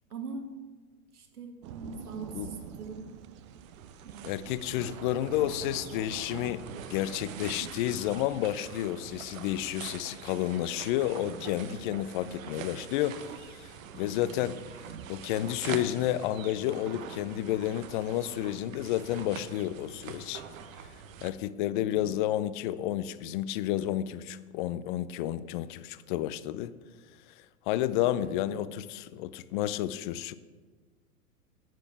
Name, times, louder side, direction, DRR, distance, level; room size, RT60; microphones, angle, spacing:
voice 1, 0.1-0.5 1.1-3.1 4.0-4.4 13.9-14.7 21.7-22.2 27.9-28.4, right 4 dB, 75° right, 2.0 m, -43 dB
sound 1, 1.6-8.3, right 8 dB, 25° right, 0.3 m, -46 dB
sound 2, 3.3-21.3, right 7 dB, 60° right, 1.1 m, -44 dB
voice 2, 4.2-6.6 6.9-14.6 15.1-20.4 21.2-26.7 27.7-30.3, left 13 dB, 35° left, 0.5 m, -31 dB
10.0 x 7.0 x 6.5 m
hypercardioid pair, 105°, 45 cm